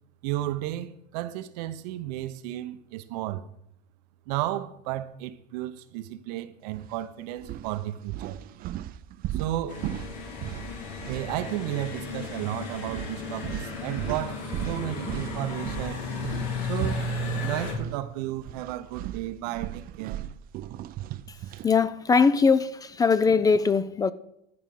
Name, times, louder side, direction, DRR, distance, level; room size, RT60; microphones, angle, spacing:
voice 1, 0.2-3.5 4.3-8.4 9.3-9.8 11.1-16.1 16.6-17.1 17.4-20.2, right 14 dB, 90° right, 0.9 m, -33 dB
sound 1, 6.7-7.0 7.4-11.9 12.1-12.4 12.9-18.0 18.3-21.7, right 13 dB, 45° right, 0.5 m, -37 dB
sound 2, 9.7-17.7, left 3 dB, 85° left, 3.1 m, -34 dB
voice 2, 21.6-24.1, left 5 dB, 20° left, 0.4 m, -21 dB
13.0 x 5.1 x 7.6 m
cardioid pair, 130°, 20 cm